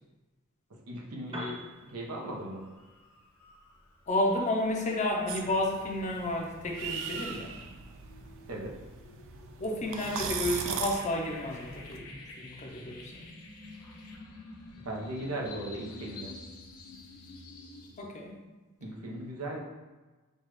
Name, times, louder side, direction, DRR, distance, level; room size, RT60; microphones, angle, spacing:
voice 1, 0.9-1.6 1.9-2.7 8.5-8.8 14.8-16.3 18.8-19.6, right 1 dB, 90° right, -2 dB, 0.9 m, -37 dB
Piano, 1.2-9.0, right 1 dB, 25° right, 0.9 m, -51 dB
sound 1, 1.9-2.2 2.5-18.0, left 2 dB, 80° left, 0.9 m, -50 dB
voice 2, 4.1-7.5 9.6-13.2 18.0-18.4, left 1 dB, 35° left, 1 dB, 0.6 m, -31 dB
sound 2, 5.3-12.0, right 6 dB, 65° right, 0.4 m, -39 dB
6.4 x 2.4 x 3.1 m, 1.2 s
head